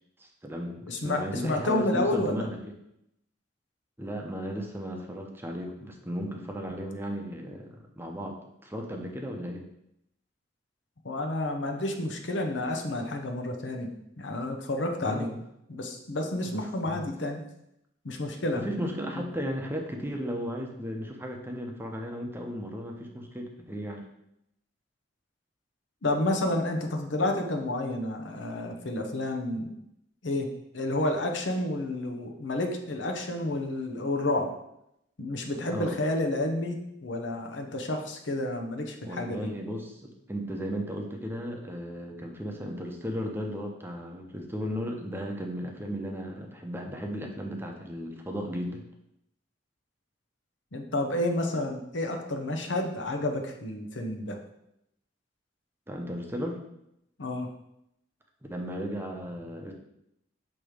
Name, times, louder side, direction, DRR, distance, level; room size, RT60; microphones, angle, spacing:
voice 1, 0.2-2.7 4.0-8.4 8.6-9.7 15.0-15.4 16.5-16.6 16.9-17.0 18.5-24.0 35.7-36.0 39.1-48.8 55.9-56.6 58.5-59.7, equal, 10° right, 2 dB, 0.7 m, -35 dB
voice 2, 0.9-2.5 11.0-13.9 14.2-15.3 15.7-17.4 18.0-18.6 19.1-19.2 26.0-29.7 30.2-30.5 30.7-34.5 35.2-39.5 50.7-54.4 57.2-57.5, left 1 dB, 75° left, 4 dB, 0.8 m, -30 dB
6.4 x 3.0 x 5.0 m, 0.81 s
head